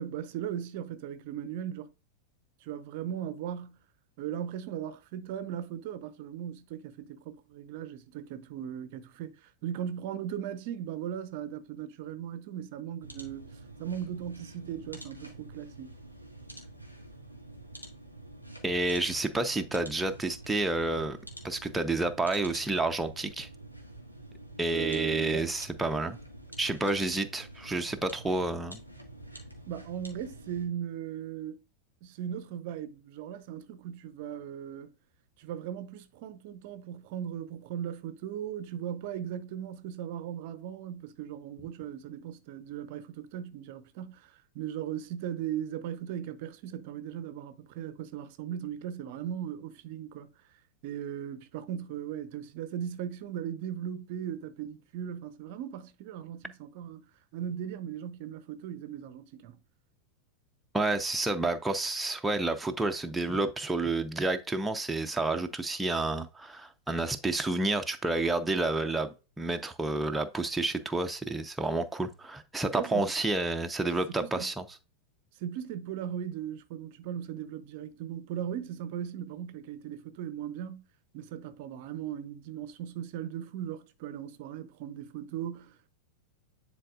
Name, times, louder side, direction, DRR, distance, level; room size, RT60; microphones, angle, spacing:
voice 1, 0.0-1.9 2.6-3.8 4.2-15.9 24.7-25.5 27.1-27.2 29.7-31.6 32.0-34.9 35.4-50.3 50.8-57.1 57.3-59.6 72.8-73.1 74.2-74.5 75.3-80.8 81.1-85.9, right 9 dB, 50° right, 0.7 m, -38 dB
sound 1, 13.0-30.7, right 1 dB, 90° left, 1.6 m, -48 dB
voice 2, 18.6-21.2 21.4-23.5 24.6-26.2 26.6-28.8 60.7-74.6, right 2 dB, 5° right, 0.7 m, -30 dB
10.0 x 4.1 x 2.4 m
figure-of-eight pair, 90°, 0 cm